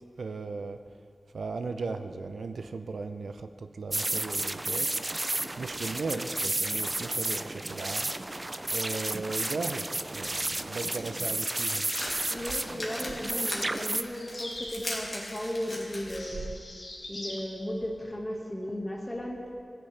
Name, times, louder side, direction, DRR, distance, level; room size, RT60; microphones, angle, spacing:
voice 1, 0.2-0.8 1.3-4.9 5.6-8.1 8.7-11.9, right 4 dB, 90° right, 8 dB, 0.5 m, -36 dB
sound 1, 3.9-14.0, right 2 dB, 30° right, 0.4 m, -32 dB
sound 2, 10.9-16.2, left 1 dB, 40° left, 2.4 m, -39 dB
voice 2, 12.3-16.6 17.1-19.4, left 1 dB, 15° left, 0 dB, 1.6 m, -35 dB
sound 3, 14.1-14.8 15.8-17.5, left 1 dB, 55° left, 3.4 m, -42 dB
16.5 x 9.9 x 3.3 m, 2.3 s
wide cardioid pair, 80°, 0 cm